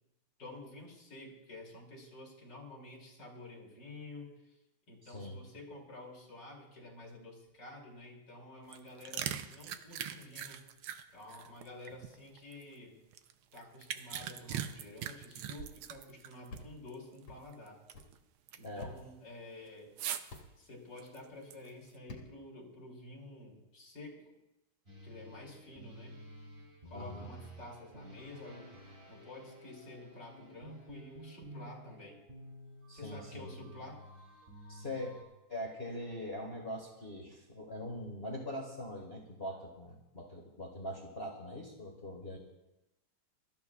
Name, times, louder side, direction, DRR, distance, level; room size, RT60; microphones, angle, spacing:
voice 1, 0.4-4.3 4.9-10.7 11.1-13.0 13.5-17.8 18.6-19.9 20.6-24.3 25.0-26.2 26.9-32.2 32.9-34.0, left 2 dB, 50° left, -2 dB, 3.5 m, -50 dB
voice 2, 5.0-5.4 18.6-18.9 26.9-27.3 32.9-33.5 34.7-35.1 35.5-42.4, left 1 dB, 30° left, -1 dB, 1.8 m, -42 dB
sound 1, 8.6-12.6 13.1-16.6 16.9-17.0 17.5-18.1 18.5-18.8 20.0-20.4 21.0-21.9, right 10 dB, 80° right, 1.5 m, -41 dB
sound 2, 16.5-16.7 17.3-17.4 17.9-18.1 18.8-19.0 20.3-20.5 22.1-22.3, left 2 dB, 85° left, 2.7 m, -47 dB
sound 3, 24.9-35.2, right 1 dB, 25° right, 3.1 m, -52 dB
24.0 x 13.5 x 2.4 m, 0.93 s
omnidirectional pair, 2.4 m